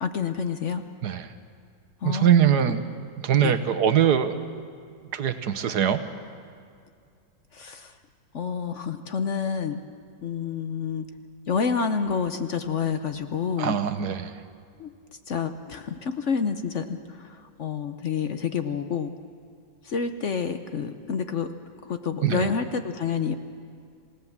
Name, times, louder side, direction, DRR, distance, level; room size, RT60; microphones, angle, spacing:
voice 1, 0.0-0.8 2.0-2.3 3.4-3.6 7.5-7.9 8.3-9.8 10.2-11.0 11.5-13.8 14.8-14.9 15.3-19.1 19.8-21.5 21.9-23.4, left 6 dB, 55° left, 8 dB, 0.8 m, -28 dB
voice 2, 1.0-1.3 2.0-2.8 3.2-4.4 5.1-6.0 13.6-14.4 22.2-22.5, right 9 dB, 60° right, 10 dB, 1.4 m, -22 dB
27.0 x 17.5 x 7.3 m, 2.2 s
omnidirectional pair, 2.1 m